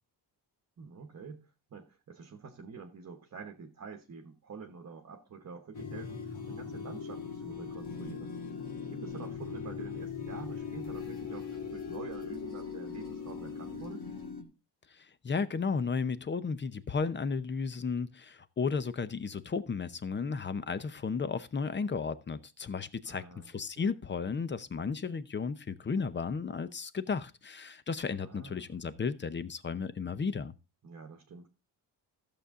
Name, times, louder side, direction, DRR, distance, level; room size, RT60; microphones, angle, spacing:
voice 1, 0.8-8.3 8.9-14.1 23.0-23.9 28.2-28.7 30.8-31.5, right 5 dB, 40° right, 1.1 m, -47 dB
sound 1, 5.7-14.4, left 6 dB, 65° left, 2.5 m, -40 dB
voice 2, 14.9-30.5, left 5 dB, 25° left, 0.7 m, -34 dB
14.0 x 7.0 x 3.7 m
wide cardioid pair, 145°, 42 cm